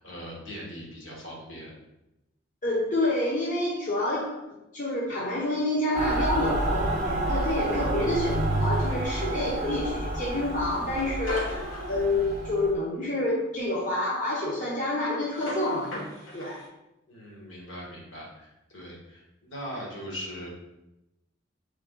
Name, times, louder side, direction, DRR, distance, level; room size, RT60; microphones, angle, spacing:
voice 1, 0.0-1.7 17.1-20.5, equal, 70° left, -3 dB, 1.4 m, -40 dB
voice 2, 2.6-4.4 4.7-15.9 16.3-16.6, left 1 dB, 40° left, -5 dB, 0.7 m, -28 dB
Mechanical fan, 5.9-12.7, right 2 dB, 40° right, 0.5 m, -29 dB
sound 1, 6.5-12.5 15.3-16.7, left 1 dB, 85° left, 1.1 m, -41 dB
3.6 x 3.5 x 3.8 m, 0.92 s
head